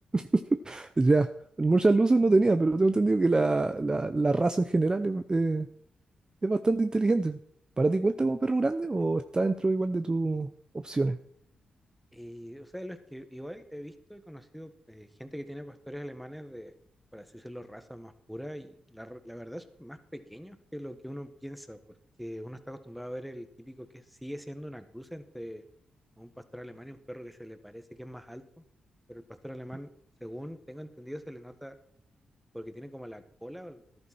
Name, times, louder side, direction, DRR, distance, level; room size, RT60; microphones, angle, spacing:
voice 1, 0.1-1.3 1.6-5.7 6.4-7.4 7.8-10.5 10.8-11.2, right 3 dB, 25° right, 10 dB, 0.6 m, -25 dB
voice 2, 12.1-16.7 17.1-21.8 22.2-25.7 26.2-28.4 29.1-29.9 30.2-31.8 32.5-33.8, equal, ahead, 9 dB, 1.5 m, -43 dB
13.5 x 11.0 x 4.3 m, 0.66 s
supercardioid pair, 45°, 3 cm